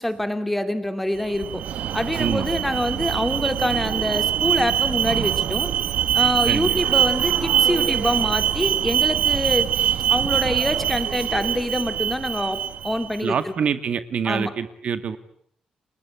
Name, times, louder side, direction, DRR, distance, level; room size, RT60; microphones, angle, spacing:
voice 1, 0.0-1.6 1.9-5.7 6.1-9.7 10.1-12.6 12.8-13.5 14.2-14.5, left 1 dB, 5° left, 9 dB, 2.5 m, -25 dB
Alarm, 1.2-13.2, right 10 dB, 85° right, 1.3 m, -23 dB
voice 2, 6.5-6.8 13.2-15.2, right 7 dB, 55° right, 11 dB, 1.9 m, -26 dB
30.0 x 20.5 x 9.8 m, 0.67 s
cardioid pair, 130°, 2 cm